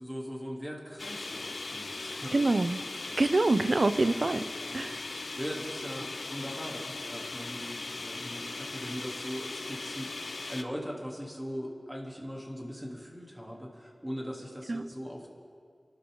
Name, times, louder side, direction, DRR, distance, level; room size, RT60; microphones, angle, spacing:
voice 1, 0.0-2.4 3.1-3.2 4.0-4.2 4.6-15.3, equal, 10° right, -2 dB, 3.4 m, -40 dB
sound 1, 1.0-10.6, left 3 dB, 80° left, 0.7 m, -39 dB
voice 2, 2.3-2.8 3.2-4.4 4.7-5.0 14.7-14.8, right 2 dB, 60° right, 11 dB, 0.7 m, -25 dB
29.0 x 12.5 x 4.0 m, 2.2 s
wide cardioid pair, 55°, 0 cm